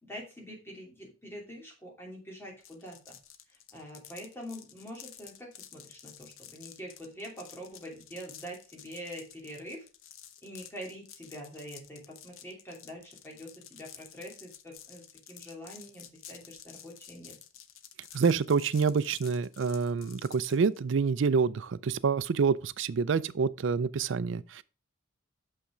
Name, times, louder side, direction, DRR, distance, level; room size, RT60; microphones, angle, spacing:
voice 1, 0.1-3.2 3.7-9.9 10.4-17.4, equal, 10° left, 2.8 m, -45 dB
sound 1, 2.6-20.8, left 10 dB, 80° left, 0.8 m, -51 dB
voice 2, 18.1-24.6, right 5 dB, 65° right, 0.4 m, -27 dB
6.5 x 5.7 x 5.0 m
head